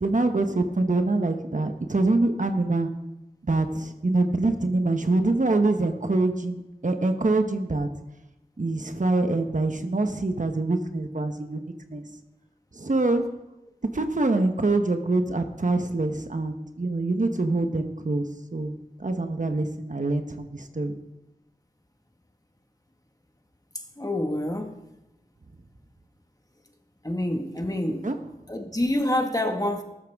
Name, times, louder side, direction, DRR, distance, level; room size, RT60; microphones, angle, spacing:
voice 1, 0.0-2.9 3.4-7.9 8.6-12.0 12.7-13.2 13.9-18.3 18.5-18.7 19.0-21.0 28.0-28.2, right 2 dB, 60° right, 7 dB, 1.0 m, -25 dB
voice 2, 24.0-24.7 27.0-28.1 28.5-29.8, left 1 dB, 25° left, 4 dB, 1.6 m, -27 dB
14.0 x 12.5 x 3.6 m, 0.93 s
wide cardioid pair, 45°, 15 cm